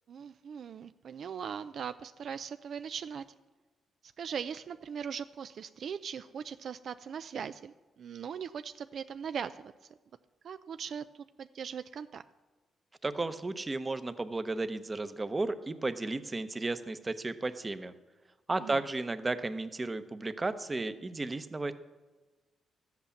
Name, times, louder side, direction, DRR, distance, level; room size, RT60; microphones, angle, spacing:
voice 1, 0.1-3.2 4.2-9.7 10.4-12.2 18.6-18.8, right 7 dB, 65° right, 11 dB, 0.4 m, -40 dB
voice 2, 13.0-17.9 18.5-21.7, right 2 dB, 25° right, 11 dB, 0.9 m, -34 dB
13.0 x 8.2 x 7.1 m, 1.2 s
cardioid pair, 80°, 0 cm